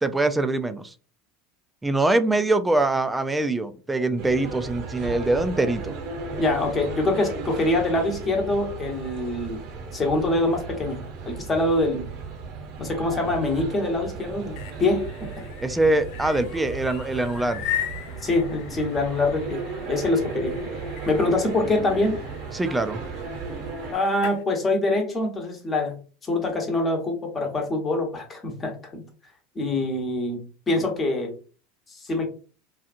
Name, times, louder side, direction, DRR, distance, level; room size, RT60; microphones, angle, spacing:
voice 1, 0.0-0.9 1.8-5.9 15.6-17.6 22.5-23.0, right 2 dB, 10° right, 11 dB, 0.4 m, -23 dB
sound 1, 4.2-23.9, right 4 dB, 60° right, 0.8 m, -35 dB
voice 2, 6.4-9.6 9.9-12.1 12.8-15.1 18.2-20.6 21.1-22.1 23.9-26.0 26.3-29.0 29.5-31.3 31.9-32.3, left 2 dB, 25° left, 2 dB, 1.0 m, -24 dB
sound 2, 14.3-24.4, left 11 dB, 65° left, 0.3 m, -38 dB
2.7 x 2.4 x 2.5 m, 0.37 s
hypercardioid pair, 85°, 0 cm